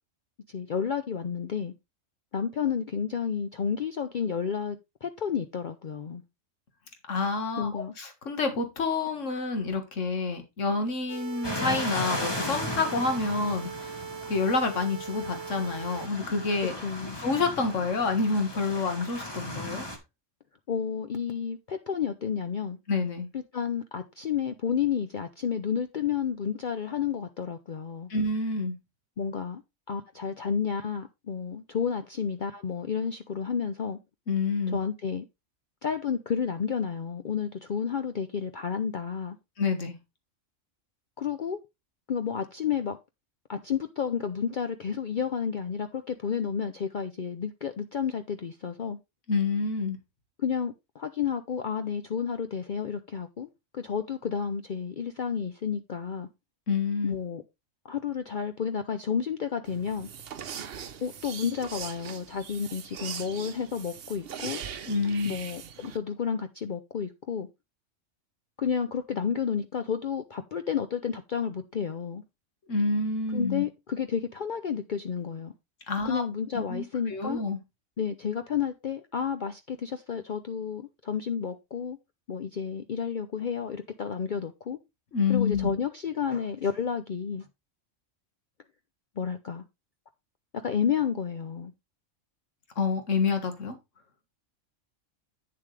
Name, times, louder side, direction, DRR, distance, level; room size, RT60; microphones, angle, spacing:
voice 1, 0.5-1.7 2.3-4.8 5.0-6.2 7.6-7.9 16.6-17.2 20.7-22.8 23.3-28.1 29.2-29.6 29.9-34.0 34.7-35.3 35.8-39.4 41.2-41.6 42.1-43.0 43.5-49.0 50.4-56.3 57.0-57.4 57.8-60.1 61.0-64.6 65.2-67.5 68.6-72.2 73.3-75.5 76.0-77.4 78.0-82.0 82.3-84.8 85.3-87.5 89.2-89.6 90.5-91.7, left 7 dB, 50° left, 0.6 m, -31 dB
voice 2, 7.1-14.0 14.3-16.7 17.2-19.8 22.9-23.3 28.1-28.8 34.3-34.8 39.6-40.0 49.3-50.0 56.7-57.2 64.9-65.3 72.7-73.6 75.9-76.2 76.5-77.6 85.1-85.7 92.8-93.8, left 4 dB, 75° left, 1.9 m, -28 dB
sound 1, 11.1-16.1, right 7 dB, 35° right, 0.5 m, -40 dB
sound 2, 11.4-20.0, left 1 dB, 20° left, 1.7 m, -36 dB
sound 3, 59.6-66.0, right 8 dB, 55° right, 0.9 m, -41 dB
8.7 x 7.1 x 3.2 m
omnidirectional pair, 1.3 m